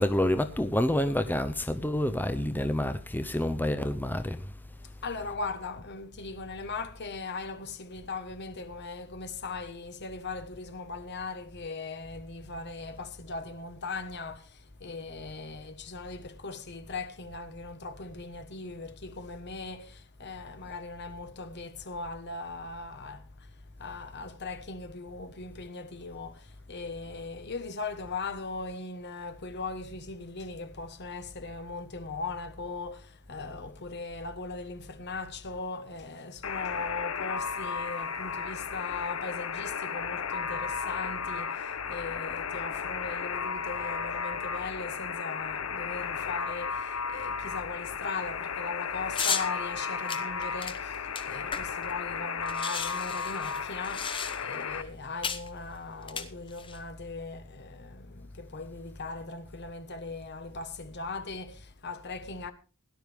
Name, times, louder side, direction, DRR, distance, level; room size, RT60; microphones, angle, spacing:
voice 1, 0.0-4.5, left 1 dB, 10° left, 0.6 m, -28 dB
voice 2, 5.0-62.5, left 3 dB, 55° left, 1.3 m, -39 dB
Alarm, 36.4-54.8, left 6 dB, 80° left, 0.9 m, -34 dB
sound 1, 49.1-49.5 50.1-51.9 52.2-52.3 52.5-54.6 55.2-55.5 56.0-56.8, left 6 dB, 25° left, 1.0 m, -34 dB
17.5 x 11.0 x 3.5 m
head